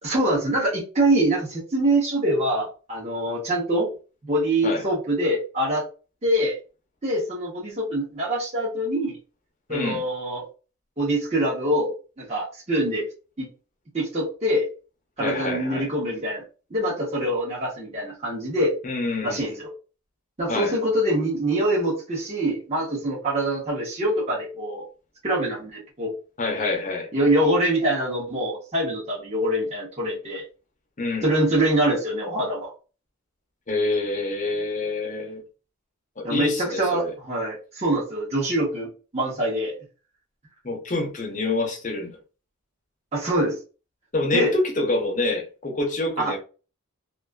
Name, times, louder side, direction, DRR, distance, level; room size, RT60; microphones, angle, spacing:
voice 1, 0.0-3.9 4.2-5.9 6.2-6.6 7.0-9.2 9.7-10.4 11.0-11.9 12.2-13.1 13.4-13.5 13.9-14.7 15.2-16.4 16.7-18.7 19.2-19.7 20.4-24.8 25.2-26.1 27.1-30.4 31.2-32.7 36.2-38.9 39.1-39.7 43.1-43.6 44.3-44.5 46.2-46.3, right 1 dB, 30° right, 0.8 m, -24 dB
voice 2, 9.7-10.0 15.2-15.9 18.8-19.6 20.5-20.7 26.4-27.1 31.0-31.3 33.7-35.4 36.2-37.1 40.6-42.2 44.1-46.4, left 2 dB, 35° left, 0.6 m, -26 dB
2.4 x 2.4 x 2.2 m
head